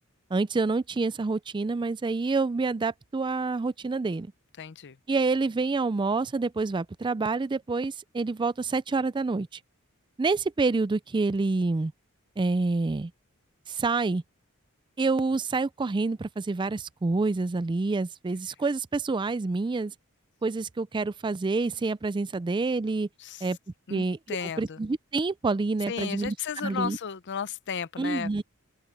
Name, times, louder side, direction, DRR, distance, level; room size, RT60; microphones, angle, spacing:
voice 1, 0.3-4.3 5.1-9.6 10.2-11.9 12.4-13.1 13.7-14.2 15.0-19.9 20.4-23.1 23.4-23.6 23.9-27.0 28.0-28.4, right 3 dB, 20° right, 0.4 m, -27 dB
voice 2, 4.6-5.0 23.2-23.4 23.9-24.8 25.9-28.3, left 6 dB, 55° left, 0.6 m, -34 dB
open air
head